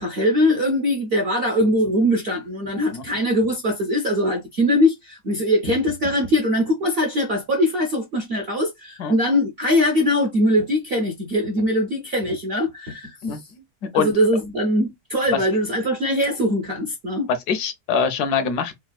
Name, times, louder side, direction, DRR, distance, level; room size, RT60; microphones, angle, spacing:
voice 1, 0.0-13.4 13.9-17.3, left 1 dB, 65° right, 0.6 m, -21 dB
voice 2, 17.3-18.8, left 6 dB, 75° left, 1.1 m, -23 dB
3.3 x 2.3 x 2.2 m
omnidirectional pair, 1.7 m